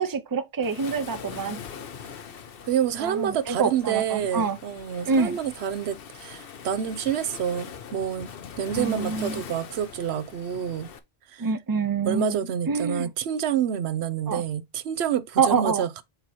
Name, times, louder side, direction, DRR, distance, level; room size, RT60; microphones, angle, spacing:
voice 1, 0.0-1.6 3.0-4.6 5.1-5.4 8.8-9.4 11.4-12.4 12.7-13.1 14.3-14.4 15.4-15.8, right 5 dB, 25° right, 0.6 m, -26 dB
Waves surf, 0.6-11.0, left 7 dB, 65° left, 1.0 m, -42 dB
voice 2, 2.7-8.3 8.6-10.9 11.3-11.5 12.0-16.0, right 9 dB, 80° right, 0.9 m, -28 dB
7.9 x 2.9 x 4.2 m
omnidirectional pair, 1.1 m